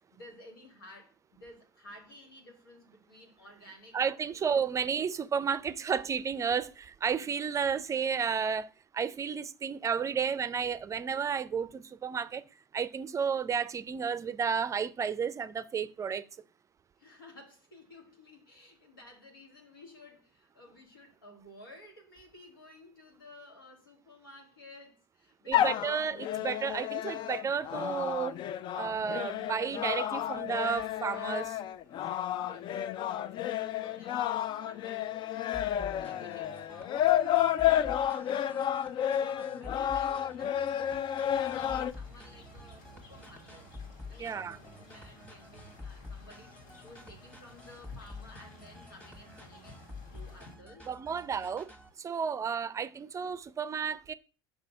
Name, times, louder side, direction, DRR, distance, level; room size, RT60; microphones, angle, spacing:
voice 1, 0.1-4.0 4.3-4.6 17.0-25.8 32.3-37.5 37.8-38.7 39.1-43.7 44.1-49.8 50.1-51.2, left 1 dB, 85° left, 1.9 m, -54 dB
voice 2, 3.9-8.7 8.9-12.4 12.7-16.2 25.5-28.4 28.7-31.6 44.2-44.6 50.9-51.7 52.0-54.1, right 6 dB, 25° right, 0.5 m, -32 dB
sound 1, 25.5-41.9, left 11 dB, 45° left, 0.4 m, -31 dB
sound 2, 35.5-51.9, left 3 dB, 10° left, 1.6 m, -49 dB
sound 3, 41.2-50.6, left 1 dB, 65° left, 1.7 m, -54 dB
5.6 x 4.0 x 5.6 m
hypercardioid pair, 70°, 11 cm